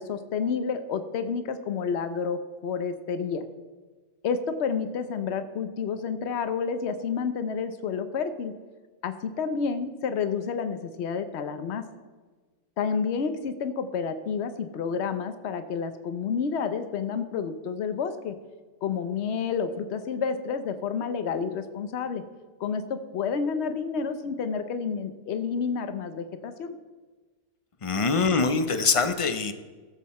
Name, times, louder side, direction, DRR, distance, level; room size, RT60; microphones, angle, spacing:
voice 1, 0.0-3.5 4.2-8.6 9.0-11.9 12.8-18.4 18.8-22.2 22.6-26.8, left 6 dB, 65° left, 9 dB, 1.0 m, -30 dB
voice 2, 27.8-29.5, left 4 dB, 35° left, 9 dB, 0.6 m, -23 dB
17.5 x 7.6 x 4.2 m, 1.4 s
omnidirectional pair, 1.3 m